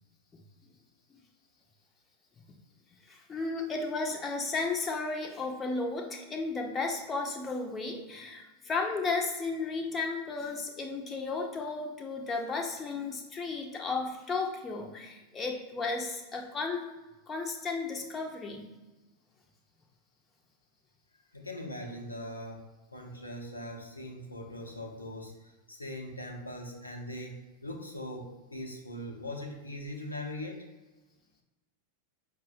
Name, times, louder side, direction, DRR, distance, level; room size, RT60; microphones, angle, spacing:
voice 1, 3.1-16.9 17.3-18.7, left 3 dB, 20° left, 2 dB, 0.5 m, -34 dB
voice 2, 21.3-22.6 22.9-30.6, left 1 dB, 80° left, 1 dB, 0.5 m, -41 dB
5.4 x 2.0 x 2.5 m, 1.1 s
figure-of-eight pair, 90°, 0 cm